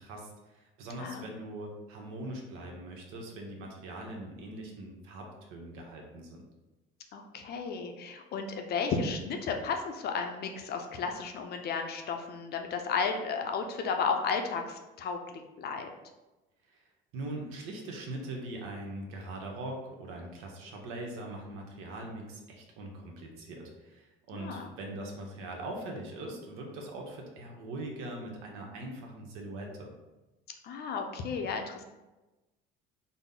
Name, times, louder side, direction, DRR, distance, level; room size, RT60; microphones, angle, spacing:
voice 1, 0.0-6.4 16.7-16.8 17.1-29.9, right 1 dB, 80° right, 1 dB, 0.9 m, -41 dB
voice 2, 7.1-15.9 24.3-24.7 30.6-31.8, left 5 dB, 50° left, 4 dB, 0.5 m, -33 dB
3.9 x 2.0 x 3.7 m, 1.1 s
cardioid pair, 105°, 21 cm